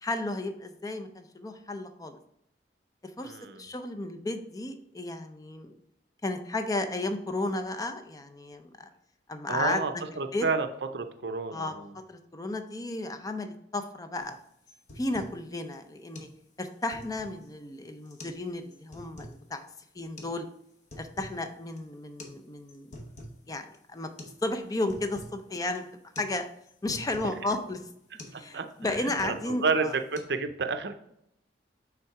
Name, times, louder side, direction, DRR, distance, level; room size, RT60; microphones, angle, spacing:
voice 1, 0.0-2.2 3.2-5.8 6.2-8.9 9.3-9.8 10.3-10.5 11.5-11.7 12.1-14.4 15.0-16.3 16.6-19.7 20.0-20.5 21.0-23.0 23.5-24.1 24.4-25.8 26.2-26.4 26.8-27.8 28.3-29.9, left 2 dB, 20° left, 7 dB, 0.5 m, -33 dB
voice 2, 3.2-3.6 9.5-9.9 10.2-10.7 10.9-11.9 28.3-28.7 28.9-29.9 30.3-31.0, right 4 dB, 65° right, 8 dB, 0.6 m, -30 dB
sound 1, 14.2-14.4 14.7-15.4 15.7-15.8 16.1-16.3 16.7-17.5 18.1-18.4 18.7-19.4 20.2-20.3 20.7-21.4 21.7-21.8 22.2-22.4 22.7-23.4 23.7-23.8 24.2-24.4 24.7-25.4 25.7-25.9 26.2-26.3 26.6-27.4 27.7-27.9 28.2-28.4 28.7-29.5 29.8-30.2, left 1 dB, 45° left, 0.9 m, -46 dB
5.8 x 3.6 x 4.6 m, 0.75 s
head